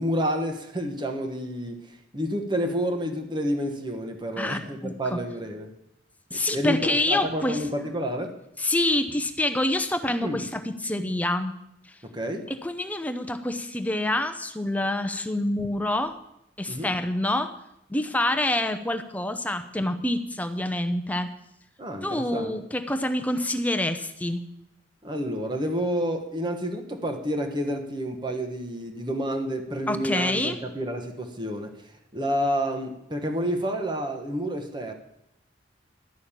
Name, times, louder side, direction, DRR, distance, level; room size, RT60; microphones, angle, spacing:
voice 1, 0.0-5.7 6.3-8.3 10.2-10.4 12.0-12.5 16.7-16.9 21.8-22.5 25.0-34.9, equal, 25° right, 1.2 m, -29 dB
voice 2, 4.4-5.2 6.3-7.6 8.6-11.5 11.9-12.0 12.6-16.1 16.6-17.5 17.9-21.3 22.0-24.5 29.9-30.6, left 1 dB, 10° left, 0.8 m, -27 dB
11.5 x 6.4 x 8.8 m
head